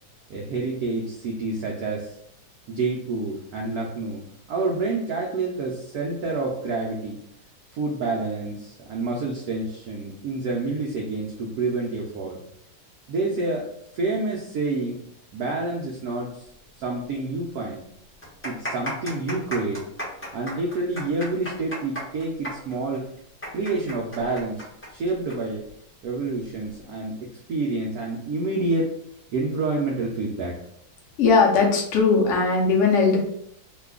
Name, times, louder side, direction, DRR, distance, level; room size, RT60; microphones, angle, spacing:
voice 1, 0.3-2.1 2.7-4.2 4.5-7.2 7.7-12.4 13.1-13.7 13.9-15.0 15.3-16.5 16.8-17.8 18.4-19.8 20.3-23.1 23.5-25.7 26.0-28.9 29.3-30.5, right 3 dB, 70° right, -2 dB, 0.9 m, -28 dB
sound 1, 17.1-17.2 17.4-17.5 18.1-25.4 25.6-25.7 26.5-26.8, right 1 dB, 15° left, 0.4 m, -34 dB
voice 2, 31.2-33.2, left 4 dB, 75° left, -1 dB, 0.6 m, -19 dB
3.2 x 2.2 x 3.5 m, 0.70 s
omnidirectional pair, 2.2 m